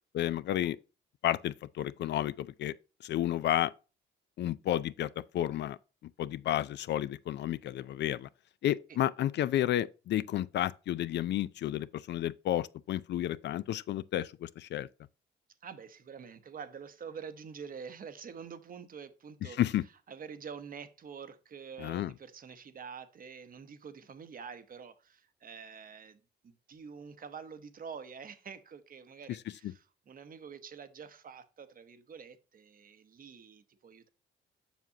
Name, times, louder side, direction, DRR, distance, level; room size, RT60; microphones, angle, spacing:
voice 1, 0.1-0.8 1.2-2.7 3.0-3.7 4.4-5.8 6.2-8.3 8.6-14.9 19.6-19.8 21.8-22.1, left 12 dB, 60° left, 0.4 m, -31 dB
voice 2, 15.6-19.6 20.1-34.1, right 6 dB, 45° right, 0.8 m, -47 dB
7.2 x 6.0 x 2.7 m
cardioid pair, 90°, 20 cm